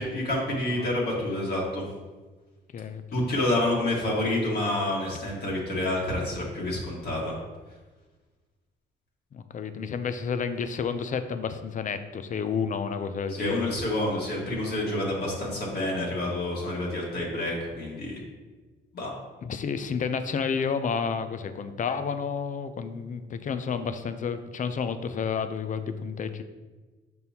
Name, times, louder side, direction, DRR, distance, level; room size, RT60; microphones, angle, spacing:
voice 1, 0.0-1.9 3.1-7.4 13.3-18.2 18.9-19.1, left 1 dB, 55° left, -4 dB, 1.8 m, -28 dB
voice 2, 2.7-3.3 9.3-13.8 19.4-26.4, left 6 dB, 40° left, 10 dB, 0.5 m, -31 dB
6.0 x 5.4 x 2.9 m, 1.3 s
cardioid pair, 90°, 20 cm